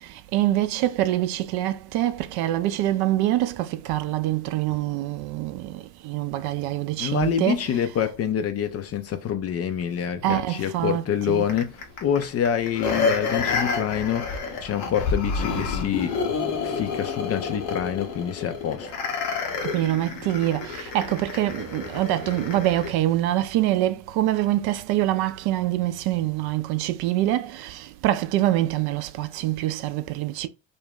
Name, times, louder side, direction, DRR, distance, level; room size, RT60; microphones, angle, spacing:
voice 1, 0.0-8.0 10.2-11.5 19.6-30.5, right 14 dB, 55° right, 0.5 m, -25 dB
voice 2, 7.0-16.2 16.6-18.9, left 9 dB, 35° left, 0.4 m, -26 dB
sound 1, 11.5-22.9 23.4-23.5, left 4 dB, 70° left, 0.9 m, -29 dB
2.5 x 2.2 x 3.4 m
hypercardioid pair, 55°, 46 cm